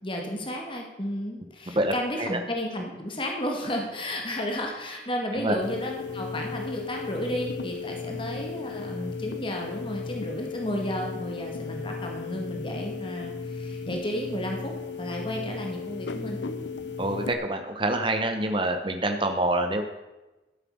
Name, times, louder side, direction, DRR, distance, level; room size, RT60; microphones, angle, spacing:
voice 1, 0.0-14.7 15.0-16.4, equal, 30° left, 1 dB, 1.9 m, -33 dB
sound 1, 5.6-17.3, left 4 dB, 80° left, 0.8 m, -35 dB
voice 2, 17.0-19.8, right 1 dB, 25° right, 5 dB, 1.0 m, -26 dB
13.5 x 7.6 x 6.4 m, 1.1 s
head